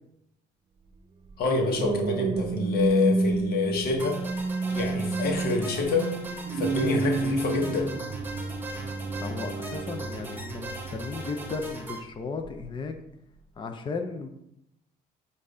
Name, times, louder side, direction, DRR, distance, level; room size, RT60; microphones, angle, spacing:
sound 1, 1.3-11.9 12.4-12.7, right 3 dB, 30° right, 0.6 m, -30 dB
voice 1, 1.4-4.2 4.7-6.1 6.5-7.9, left 4 dB, 65° left, 2 dB, 1.3 m, -27 dB
sound 2, 4.0-12.0, right 1 dB, 10° right, 1.1 m, -40 dB
voice 2, 9.2-12.9 13.6-14.3, left 4 dB, 30° left, 5 dB, 0.6 m, -35 dB
7.5 x 2.7 x 4.9 m, 0.78 s
cardioid pair, 110°, 17 cm